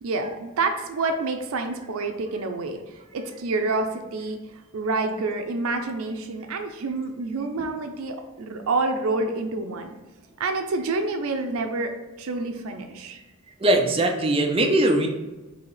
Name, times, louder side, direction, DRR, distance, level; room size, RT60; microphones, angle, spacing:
voice 1, 0.0-4.4 4.7-9.9 10.4-11.9 12.2-13.2, right 3 dB, 80° right, 5 dB, 0.5 m, -28 dB
voice 2, 13.6-15.1, right 1 dB, 25° right, 3 dB, 0.5 m, -20 dB
4.0 x 2.8 x 4.7 m, 1.1 s
head